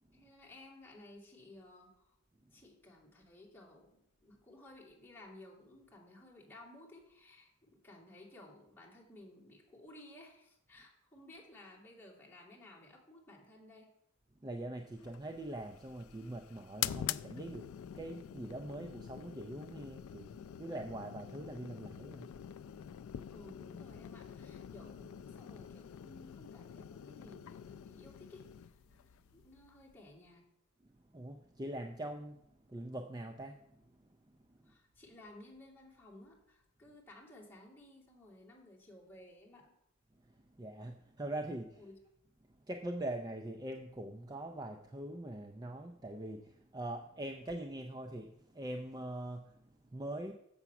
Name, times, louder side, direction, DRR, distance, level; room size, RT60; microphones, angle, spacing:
voice 1, 0.1-2.1 2.5-13.9 23.3-28.5 29.3-30.5 34.6-39.7 41.8-42.0, left 1 dB, 10° left, -5 dB, 2.5 m, -56 dB
voice 2, 14.4-23.2 30.8-34.7 40.3-41.8 42.5-50.3, right 1 dB, 20° right, 4 dB, 0.5 m, -43 dB
sound 1, 15.0-30.3, left 10 dB, 85° left, 0.3 m, -46 dB
7.1 x 7.0 x 5.9 m, 0.76 s
head